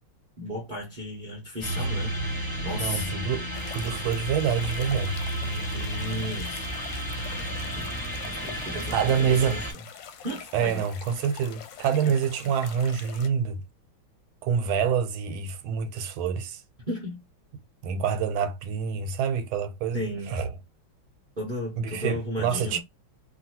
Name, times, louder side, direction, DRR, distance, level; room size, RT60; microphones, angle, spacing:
voice 1, 0.4-2.2 2.6-3.2 5.4-6.7 7.8-7.9 8.3-9.7 10.2-10.9 12.0-12.1 16.9-17.2 19.9-20.4 21.4-22.8, equal, 65° right, 0.4 m, -34 dB
sound 1, 1.6-9.7, right 1 dB, 20° left, 0.5 m, -32 dB
voice 2, 2.8-5.2 8.9-9.6 10.5-13.6 14.4-16.6 17.8-20.5 21.8-22.8, right 7 dB, 90° right, 1.4 m, -27 dB
sound 2, 3.5-13.3, left 8 dB, 75° left, 1.2 m, -45 dB
2.8 x 2.8 x 2.8 m
omnidirectional pair, 2.2 m